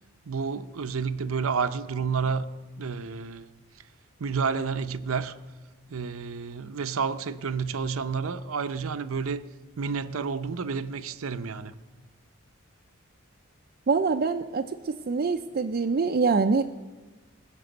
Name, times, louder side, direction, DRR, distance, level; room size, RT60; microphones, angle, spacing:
voice 1, 0.3-2.5 2.8-3.5 4.2-5.4 5.9-9.5 9.8-11.7, right 5 dB, 80° right, 0.7 m, -30 dB
voice 2, 13.9-16.6, right 4 dB, 45° right, 0.4 m, -25 dB
19.0 x 6.8 x 7.9 m
head